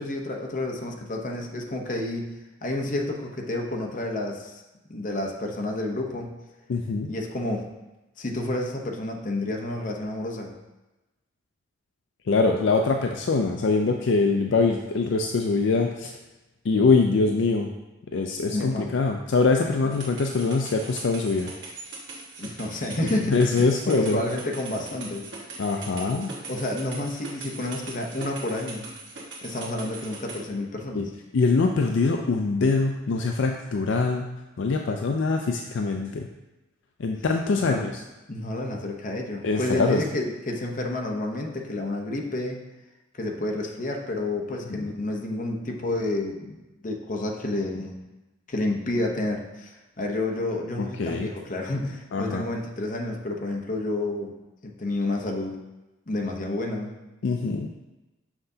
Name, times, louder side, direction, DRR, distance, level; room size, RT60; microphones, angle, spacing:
voice 1, 0.0-2.3 2.6-4.6 4.9-6.3 7.1-7.7 8.2-10.5 18.5-18.9 22.4-25.3 26.5-28.9 29.4-31.0 37.6-37.8 38.3-42.6 43.1-48.0 48.5-54.3 54.6-55.6 56.1-56.9 57.4-57.6, left 2 dB, 40° left, 1 dB, 0.8 m, -30 dB
voice 2, 6.7-7.1 12.3-16.1 16.6-17.7 18.1-21.5 23.3-24.2 25.6-26.3 30.9-31.0 31.3-34.3 34.6-36.3 37.0-38.0 39.4-40.0 44.7-44.9 51.0-51.3 52.1-52.4 57.2-57.7, left 4 dB, 65° left, 3 dB, 0.4 m, -23 dB
sound 1, 19.9-30.4, right 3 dB, 65° right, 1.3 m, -41 dB
6.6 x 5.8 x 2.7 m, 1.1 s
head